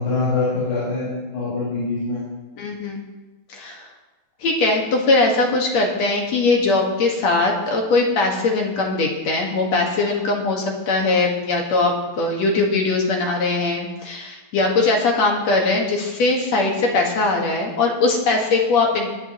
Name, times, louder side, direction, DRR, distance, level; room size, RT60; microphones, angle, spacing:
voice 1, 0.0-2.2, left 3 dB, 85° left, -9 dB, 6.9 m, -24 dB
voice 2, 2.6-3.0 3.5-3.8 4.4-19.1, left 3 dB, 55° left, 0 dB, 2.4 m, -20 dB
21.0 x 10.5 x 3.0 m, 1.1 s
omnidirectional pair, 4.3 m